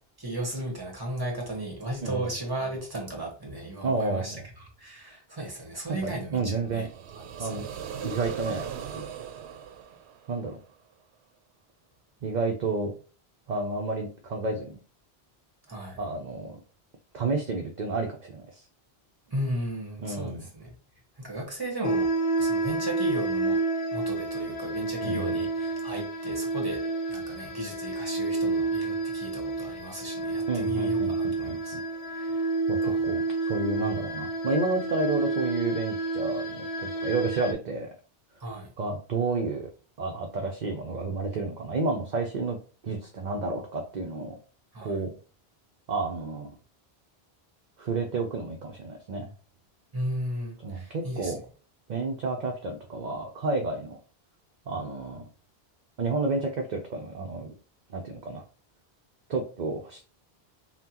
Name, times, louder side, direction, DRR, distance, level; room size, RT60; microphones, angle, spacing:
voice 1, 0.2-4.3 4.8-6.9 7.4-7.7 15.7-16.0 19.3-20.7 21.2-22.1 22.4-23.6 23.9-31.8 32.1-32.4 32.8-33.0 38.4-38.7 44.7-45.0 49.9-51.3, right 1 dB, 20° right, 1.4 m, -35 dB
voice 2, 3.8-4.4 5.9-6.9 7.4-7.6 8.0-9.1 10.3-10.6 12.2-12.9 13.5-14.8 16.0-16.6 17.1-18.7 20.0-20.5 25.0-25.4 30.5-31.8 32.7-37.9 38.8-39.7 40.0-42.6 42.8-44.4 44.8-45.2 45.9-46.5 47.8-49.3 50.6-51.4 51.9-54.0 54.7-55.3 56.0-57.5 57.9-58.4 59.3-60.0, right 3 dB, 50° right, 0.7 m, -31 dB
sound 1, 6.6-10.7, right 8 dB, 85° right, 0.8 m, -39 dB
sound 2, 21.8-37.5, right 3 dB, 55° left, 0.8 m, -29 dB
5.6 x 2.2 x 2.9 m
omnidirectional pair, 1.1 m